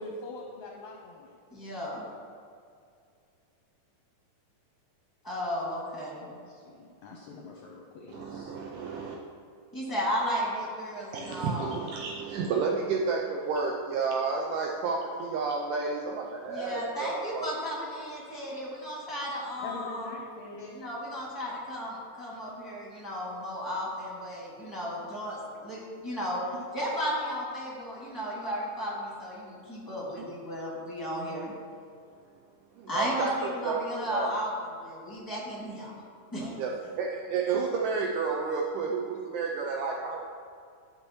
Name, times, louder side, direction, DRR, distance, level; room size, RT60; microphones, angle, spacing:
voice 1, 0.0-1.3 6.3-8.6 19.6-20.8, left 2 dB, 75° left, -1 dB, 1.8 m, -43 dB
voice 2, 1.5-2.1 5.2-6.3 9.7-11.8 16.5-20.1 20.7-26.4 26.7-31.5 32.9-36.0 36.3-36.5, equal, 10° left, -6 dB, 1.4 m, -34 dB
voice 3, 8.1-9.2 11.1-17.5 32.9-33.3 33.6-33.8 34.1-34.3 36.6-36.7 37.0-40.2, right 4 dB, 80° right, -1 dB, 2.1 m, -31 dB
12.5 x 6.5 x 3.1 m, 2.3 s
omnidirectional pair, 4.0 m